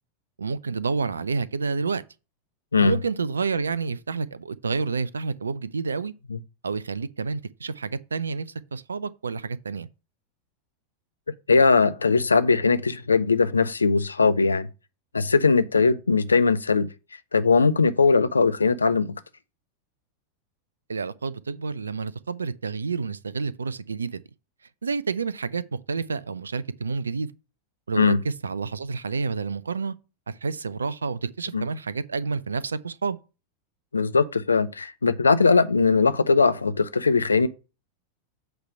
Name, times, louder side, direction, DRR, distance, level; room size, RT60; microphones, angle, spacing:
voice 1, 0.4-2.0 2.8-6.1 6.6-9.9 20.9-24.2 24.8-27.3 27.9-29.9 30.3-33.2, right 4 dB, 75° right, 0.4 m, -29 dB
voice 2, 11.5-14.7 15.1-16.9 17.3-19.1 28.0-28.2 31.5-31.7 33.9-37.5, left 4 dB, 75° left, 0.5 m, -20 dB
8.0 x 3.3 x 6.4 m
figure-of-eight pair, 90°, 0 cm